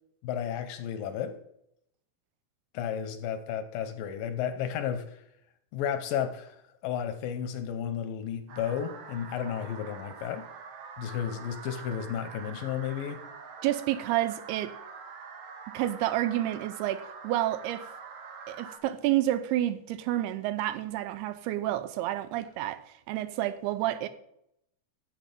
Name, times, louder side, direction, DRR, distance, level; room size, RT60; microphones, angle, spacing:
voice 1, 0.2-1.4 2.7-5.2 5.7-10.4 11.0-13.2, left 9 dB, 75° left, 2.2 m, -33 dB
sound 1, 8.5-18.8, right 5 dB, 70° right, 1.5 m, -45 dB
voice 2, 13.6-14.7 15.7-17.9 18.5-24.1, right 14 dB, 85° right, 2.6 m, -29 dB
12.5 x 8.2 x 5.3 m
omnidirectional pair, 4.6 m